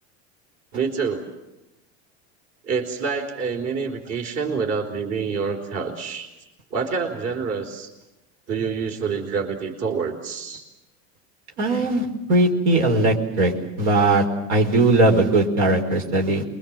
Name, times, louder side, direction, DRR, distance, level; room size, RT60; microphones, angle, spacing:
voice 1, 0.7-1.3 2.6-6.3 6.7-7.9 8.5-10.6, right 5 dB, 50° right, 3 dB, 4.3 m, -27 dB
voice 2, 11.6-13.5 13.8-16.4, right 2 dB, 75° right, 2 dB, 4.9 m, -19 dB
28.0 x 23.0 x 7.5 m, 0.98 s
supercardioid pair, 125°, 34 cm